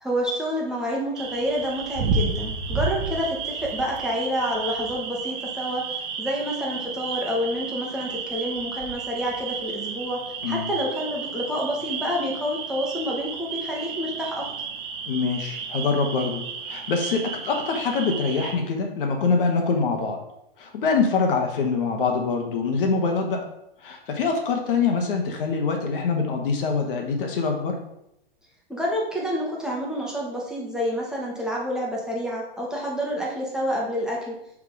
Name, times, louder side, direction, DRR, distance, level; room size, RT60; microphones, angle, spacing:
voice 1, 0.0-5.8 6.2-10.2 10.5-14.5 28.7-34.4, equal, ahead, -4 dB, 1.3 m, -28 dB
sound 1, 1.1-18.5, right 5 dB, 35° right, 1.0 m, -32 dB
voice 2, 15.1-20.2 20.6-23.4 23.8-27.8, left 4 dB, 65° left, 3 dB, 1.3 m, -24 dB
5.9 x 3.7 x 4.8 m, 0.81 s
hypercardioid pair, 120°, 30 cm